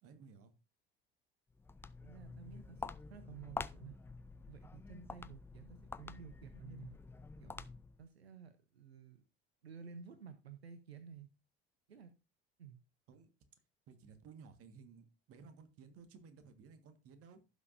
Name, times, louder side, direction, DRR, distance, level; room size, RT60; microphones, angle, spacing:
voice 1, 0.0-0.5 13.1-13.3 13.9-17.4, right 5 dB, 45° right, 10 dB, 1.6 m, -57 dB
Walk footsteps, 1.5-8.1, left 4 dB, 10° left, 0.3 m, -48 dB
voice 2, 2.0-4.0 4.5-7.0 7.4-7.7 8.0-9.2 9.6-11.3 11.9-12.1 12.6-12.8, right 7 dB, 80° right, 11 dB, 0.8 m, -53 dB
15.5 x 6.2 x 2.6 m, 0.27 s
figure-of-eight pair, 60°, 31 cm